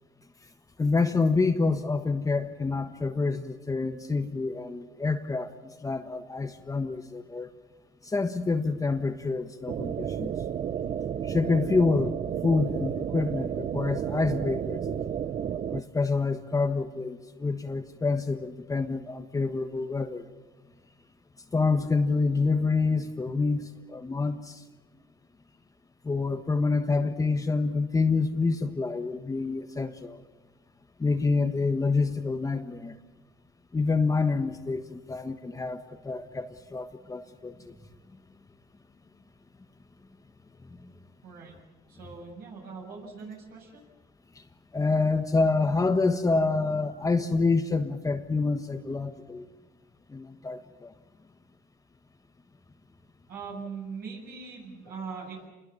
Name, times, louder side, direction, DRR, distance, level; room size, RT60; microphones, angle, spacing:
voice 1, 0.8-5.5 5.8-7.5 8.0-10.3 11.2-12.1 12.4-15.1 15.7-20.3 21.5-24.6 26.0-30.2 31.0-33.0 33.7-37.7 40.8-40.9 44.3-44.4 44.7-49.5 50.1-50.9, left 3 dB, 20° left, 6 dB, 1.4 m, -27 dB
sound 1, 9.7-15.8, right 9 dB, 45° right, 0.7 m, -32 dB
voice 2, 41.2-41.6 41.9-43.8 53.3-55.5, right 5 dB, 65° right, -1 dB, 7.6 m, -41 dB
27.5 x 21.5 x 7.1 m, 1.3 s
cardioid pair, 110°, 17 cm